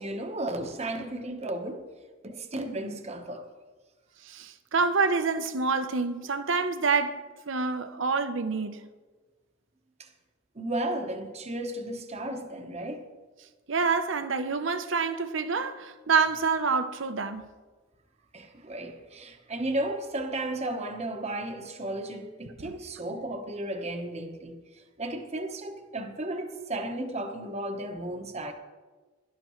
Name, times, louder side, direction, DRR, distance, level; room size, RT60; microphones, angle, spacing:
voice 1, 0.0-1.8 2.2-3.5 10.0-10.1 10.5-13.1 18.3-24.6 25.0-28.5, right 1 dB, 30° right, 1.0 m, -34 dB
voice 2, 4.2-8.9 13.7-17.5 22.6-22.7, right 4 dB, 60° right, 0.7 m, -27 dB
17.5 x 11.5 x 3.1 m
head